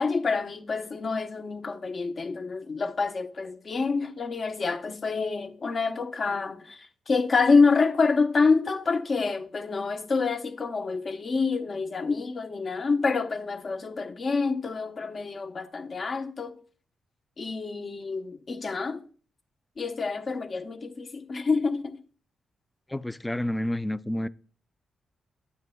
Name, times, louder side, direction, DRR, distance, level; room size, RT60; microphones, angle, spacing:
voice 1, 0.0-16.6 17.4-19.0 19.8-22.0, left 4 dB, 55° left, 0.9 m, -27 dB
voice 2, 22.9-24.3, left 1 dB, 15° left, 0.4 m, -29 dB
9.4 x 7.6 x 2.3 m
cardioid pair, 55°, 0 cm